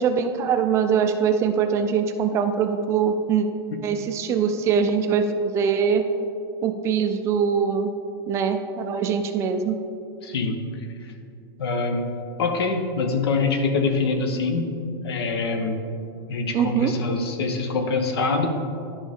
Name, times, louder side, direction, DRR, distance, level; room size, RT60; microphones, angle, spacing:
voice 1, 0.0-3.5 3.8-6.1 6.6-7.9 8.3-9.8 16.5-16.9, right 6 dB, 20° right, 7 dB, 0.4 m, -22 dB
voice 2, 10.2-11.1 11.6-12.1 12.4-14.7 15.0-15.8 16.3-18.5, left 3 dB, 80° left, 5 dB, 1.1 m, -25 dB
11.5 x 5.1 x 3.6 m, 2.6 s
supercardioid pair, 160°, 13 cm